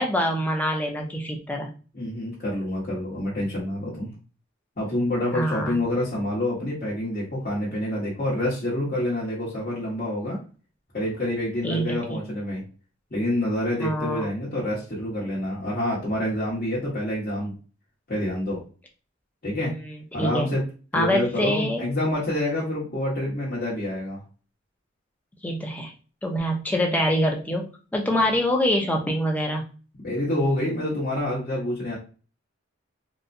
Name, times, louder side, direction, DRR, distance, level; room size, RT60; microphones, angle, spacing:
voice 1, 0.0-1.7 5.3-5.8 11.6-12.2 13.8-14.3 19.6-20.5 20.9-21.8 25.4-25.9 26.2-29.6, equal, 10° left, 1 dB, 0.6 m, -25 dB
voice 2, 1.9-4.1 4.8-10.4 10.9-12.6 13.1-17.5 18.1-18.6 19.4-19.7 20.1-20.6 20.9-24.2 30.0-32.0, left 1 dB, 45° left, -7 dB, 1.2 m, -27 dB
4.0 x 2.2 x 2.6 m, 0.36 s
head